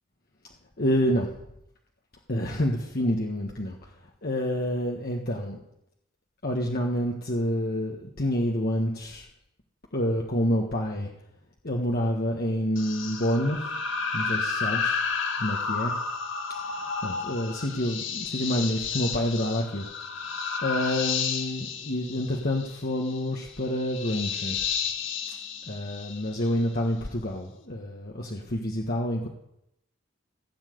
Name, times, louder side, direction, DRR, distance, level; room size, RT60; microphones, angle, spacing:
voice 1, 0.8-1.3 2.3-3.9 4.2-5.6 6.4-9.3 9.9-11.1 11.6-13.7 14.1-15.0 15.4-15.9 17.0-19.9 20.6-24.6 25.7-29.3, equal, 50° left, 0 dB, 1.6 m, -28 dB
sound 1, 12.8-26.6, left 5 dB, 70° left, 2.0 m, -32 dB
16.5 x 7.4 x 9.4 m, 0.80 s
head